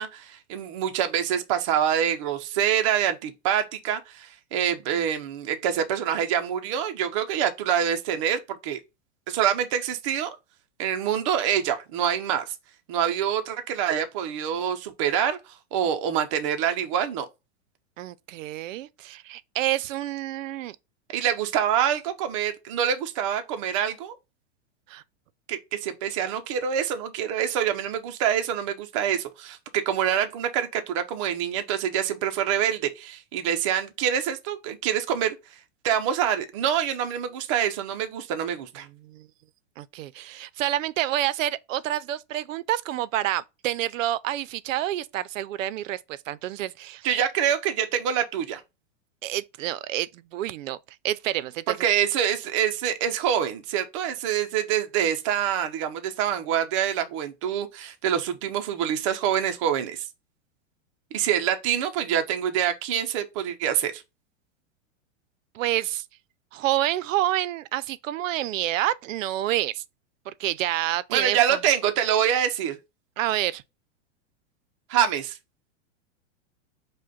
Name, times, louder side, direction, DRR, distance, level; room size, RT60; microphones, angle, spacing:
voice 1, 0.0-8.8 9.3-10.4 10.8-12.5 12.9-15.4 15.7-17.3 21.1-24.2 25.5-35.4 35.8-38.9 47.0-48.6 51.7-60.1 61.1-64.0 71.1-72.8 74.9-75.4, right 9 dB, 25° right, 0.4 m, -26 dB
voice 2, 18.0-20.8 24.9-25.0 39.0-39.3 39.8-47.1 49.2-50.8 51.0-51.7 65.5-66.0 66.5-69.8 70.3-71.6 73.2-73.6, right 13 dB, 85° right, 0.5 m, -28 dB
5.0 x 2.1 x 3.9 m
supercardioid pair, 165°, 38 cm